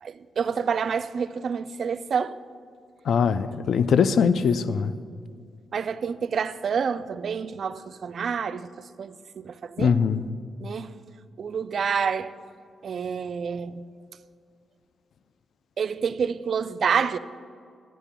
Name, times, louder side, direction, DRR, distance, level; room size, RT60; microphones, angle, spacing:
voice 1, 0.0-2.4 5.7-8.7 9.0-9.9 10.6-11.0 11.4-12.3 12.8-13.9 15.8-17.2, right 6 dB, 65° right, 0.4 m, -28 dB
voice 2, 3.0-4.9 9.8-10.3, left 6 dB, 70° left, 0.4 m, -22 dB
16.5 x 11.0 x 2.3 m
supercardioid pair, 45°, 0 cm